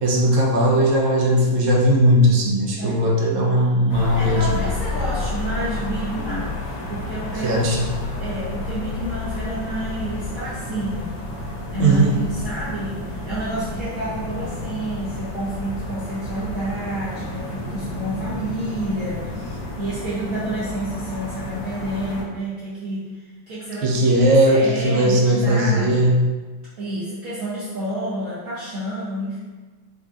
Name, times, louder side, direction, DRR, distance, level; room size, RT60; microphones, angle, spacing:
voice 1, 0.0-4.6 7.4-7.9 11.8-12.1 23.8-26.2, right 1 dB, 90° right, -1 dB, 1.5 m, -18 dB
sound 1, 3.9-22.2, left 2 dB, 70° left, 1.4 m, -31 dB
voice 2, 4.0-7.7 8.2-26.1 26.8-29.4, right 1 dB, 65° right, -10 dB, 0.8 m, -29 dB
4.6 x 2.5 x 2.4 m, 1.3 s
omnidirectional pair, 2.3 m